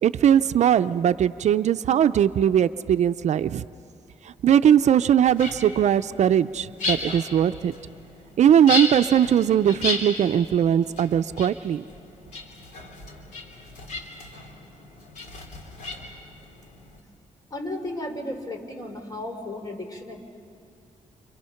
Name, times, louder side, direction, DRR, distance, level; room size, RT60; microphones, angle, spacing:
voice 1, 0.0-3.6 4.3-7.7 8.4-11.8, right 9 dB, 65° right, 12 dB, 0.5 m, -20 dB
sound 1, 5.3-17.0, left 2 dB, 85° left, 3.4 m, -34 dB
voice 2, 17.5-20.2, left 1 dB, 30° left, 4 dB, 3.4 m, -34 dB
30.0 x 26.5 x 5.8 m, 2.6 s
cardioid pair, 105°, 13 cm